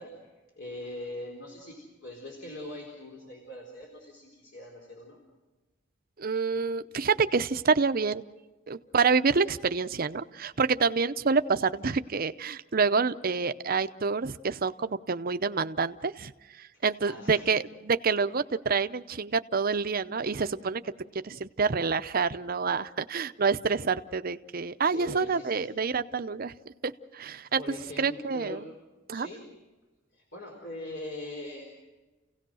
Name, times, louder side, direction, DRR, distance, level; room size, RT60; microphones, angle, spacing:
voice 1, 0.0-5.2 16.0-16.1 16.7-17.5 24.8-25.7 27.4-28.7 29.1-29.5 30.1-31.7, left 1 dB, 65° left, -1 dB, 4.2 m, -42 dB
voice 2, 6.2-8.2 8.7-16.3 16.6-20.8 21.1-26.5 26.8-27.6 28.0-28.6 29.1-29.3, right 5 dB, 50° right, 11 dB, 0.7 m, -27 dB
29.0 x 17.5 x 6.3 m, 1.2 s
head